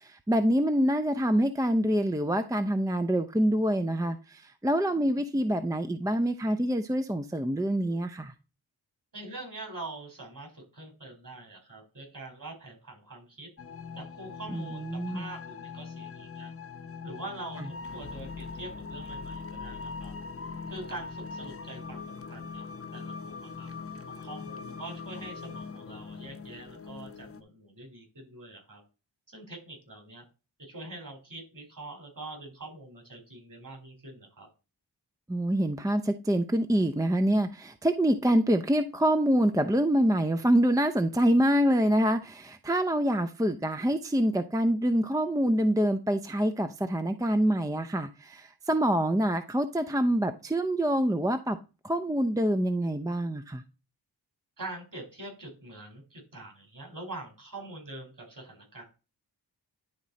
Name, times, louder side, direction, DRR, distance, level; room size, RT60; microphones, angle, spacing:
voice 1, 0.0-8.3 14.5-15.3 35.3-51.6 51.8-53.6, equal, 10° right, 8 dB, 0.6 m, -26 dB
voice 2, 9.1-13.5 14.0-16.5 17.0-20.1 20.7-23.7 24.1-28.8 29.3-30.2 30.6-34.5 54.6-58.8, right 2 dB, 50° right, 3 dB, 4.3 m, -44 dB
sound 1, 13.6-27.4, left 5 dB, 35° left, 0.9 m, -41 dB
11.0 x 3.7 x 4.1 m, 0.30 s
cardioid pair, 55°, 42 cm